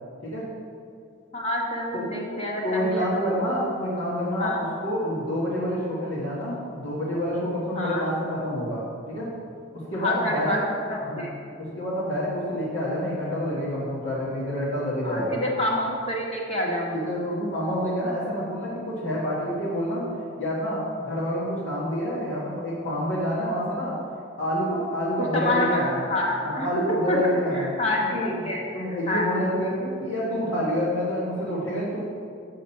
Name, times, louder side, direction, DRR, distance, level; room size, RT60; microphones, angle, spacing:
voice 1, 1.3-3.5 4.4-4.6 7.7-8.0 9.9-10.6 10.9-11.3 15.0-17.4 25.3-27.2 27.5-29.3, left 1 dB, 30° left, -2 dB, 1.3 m, -28 dB
voice 2, 2.6-9.3 9.7-10.6 11.1-11.2 11.6-15.4 16.9-20.0 20.4-24.0 24.4-26.0 26.4-27.7 28.0-28.3 28.7-32.0, equal, 75° left, -7 dB, 1.6 m, -28 dB
7.3 x 6.2 x 5.6 m, 2.3 s
head